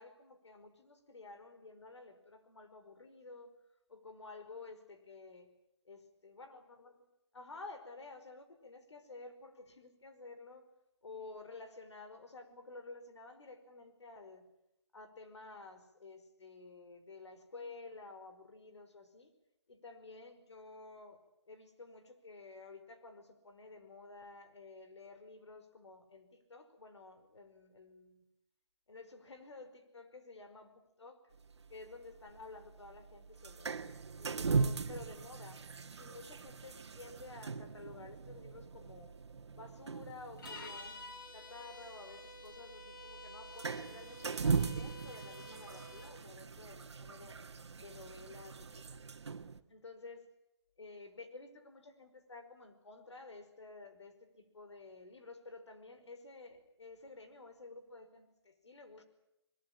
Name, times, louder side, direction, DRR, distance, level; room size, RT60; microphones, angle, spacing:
voice 1, 0.0-3.5 3.9-5.5 5.8-7.0 7.3-10.6 11.0-14.5 14.9-19.3 19.7-28.2 28.9-31.2 31.7-33.8 34.1-35.6 36.0-39.1 39.5-47.4 47.8-49.0 49.7-50.3 50.8-59.0, left 3 dB, 90° left, 9 dB, 5.2 m, -52 dB
sound 1, 31.3-49.6, right 5 dB, 75° right, 1.8 m, -40 dB
sound 2, 40.4-46.2, left 2 dB, 50° left, 5.1 m, -50 dB
22.5 x 22.0 x 8.9 m, 0.83 s
hypercardioid pair, 165°, 14 cm